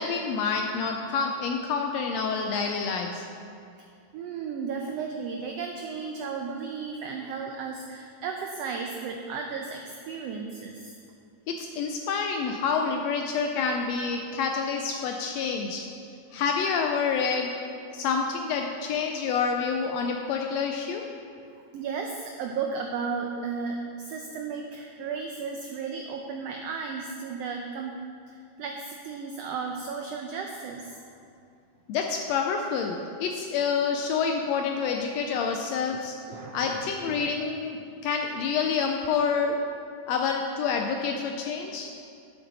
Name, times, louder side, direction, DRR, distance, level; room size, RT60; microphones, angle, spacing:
voice 1, 0.0-3.3 11.5-15.9 16.3-17.5 17.9-21.0 31.9-36.1 36.5-37.8 38.0-39.6 40.1-41.9, left 5 dB, 90° left, 3 dB, 1.5 m, -28 dB
voice 2, 4.1-10.9 21.7-28.0 28.3-31.0 36.3-37.3, right 5 dB, 85° right, 2 dB, 1.4 m, -34 dB
11.0 x 7.9 x 4.0 m, 2.5 s
omnidirectional pair, 3.6 m